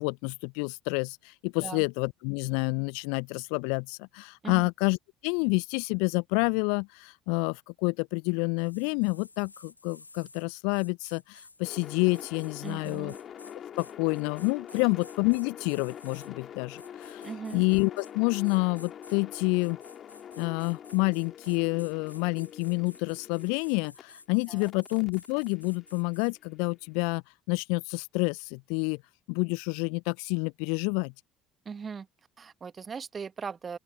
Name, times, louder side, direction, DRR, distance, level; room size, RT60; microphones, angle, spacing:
voice 1, 0.0-5.0 5.2-13.1 13.8-17.2 17.5-19.8 20.4-29.0 29.3-31.1, left 36 dB, 65° left, 0.7 m, -28 dB
sound 1, 8.6-16.3 16.8-18.1 18.4-26.3, left 3 dB, 90° left, 1.8 m, -53 dB
sound 2, 11.6-24.0 24.6-26.7, left 9 dB, 45° left, 2.6 m, -45 dB
voice 2, 12.6-13.2 14.7-14.9 17.2-17.6 24.5-24.7 31.6-32.1 32.4-33.8, right 6 dB, 35° right, 1.6 m, -39 dB
open air
figure-of-eight pair, 55°, 0 cm